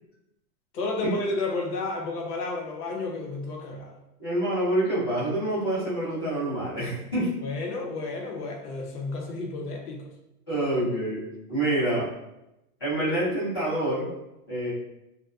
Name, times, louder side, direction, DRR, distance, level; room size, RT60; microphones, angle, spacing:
voice 1, 0.7-4.0 7.4-10.1, left 3 dB, 80° left, 1 dB, 0.8 m, -31 dB
voice 2, 4.2-7.3 10.5-11.2 11.5-12.1 12.8-14.1 14.5-14.7, right 1 dB, 15° left, -13 dB, 0.5 m, -26 dB
2.5 x 2.2 x 2.3 m, 0.89 s
hypercardioid pair, 175°, 46 cm